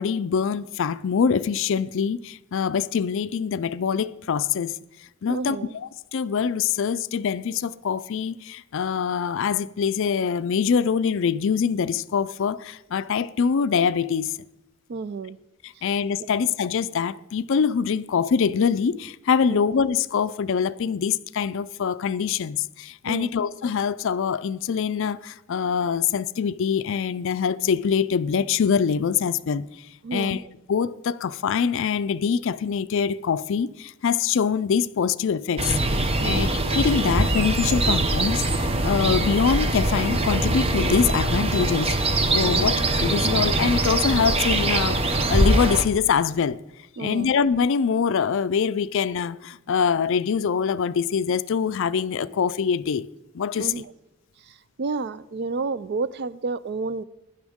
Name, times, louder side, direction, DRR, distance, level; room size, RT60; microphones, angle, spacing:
voice 1, 0.0-4.7 5.2-5.6 5.8-14.3 15.6-29.6 30.1-30.4 30.7-35.8 36.2-41.9 42.3-46.6 47.0-53.1 53.3-53.7, left 6 dB, 60° left, 0.4 m, -24 dB
voice 2, 5.3-5.8 14.9-15.4 16.2-16.3 19.5-19.6 23.1-23.4 30.0-30.5 36.2-36.5 42.4-42.7 47.0-47.3 53.6-53.9 54.5-57.0, right 4 dB, 50° right, 0.4 m, -31 dB
sound 1, 35.6-45.8, right 2 dB, 30° right, 0.8 m, -22 dB
17.0 x 11.0 x 3.6 m
head